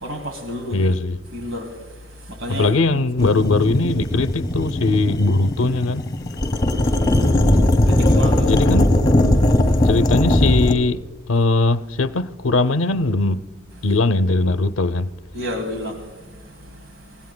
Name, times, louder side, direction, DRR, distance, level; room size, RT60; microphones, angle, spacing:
voice 1, 0.0-0.8 1.3-1.7 2.3-3.0 7.9-8.5 15.3-16.0, equal, 70° right, 2.3 m, -30 dB
voice 2, 0.7-1.2 2.5-6.0 8.4-9.0 9.8-11.0 11.3-13.4 13.8-15.1, left 2 dB, 80° left, 0.6 m, -20 dB
Espresso medium, 3.2-10.7, left 1 dB, 20° left, 1.9 m, -18 dB
26.5 x 19.5 x 2.2 m
head